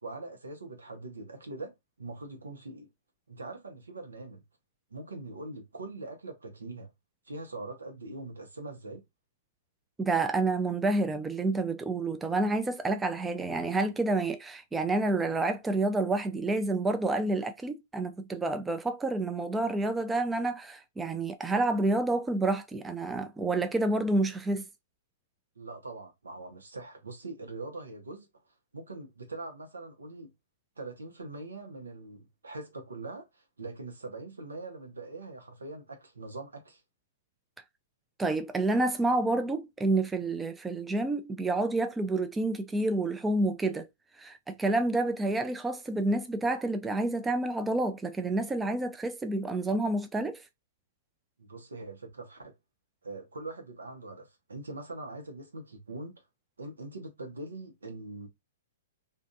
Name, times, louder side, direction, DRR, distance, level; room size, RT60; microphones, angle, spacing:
voice 1, 0.0-2.9 3.3-4.4 4.9-6.9 7.3-9.0 25.6-28.3 28.7-30.3 30.8-36.8 51.4-52.5 53.0-56.2 56.6-58.3, right 2 dB, 80° right, 0.9 m, -42 dB
voice 2, 10.0-24.6 38.2-43.9 44.2-50.4, right 2 dB, 10° right, 0.3 m, -29 dB
2.5 x 2.5 x 2.2 m
figure-of-eight pair, 115°, 0 cm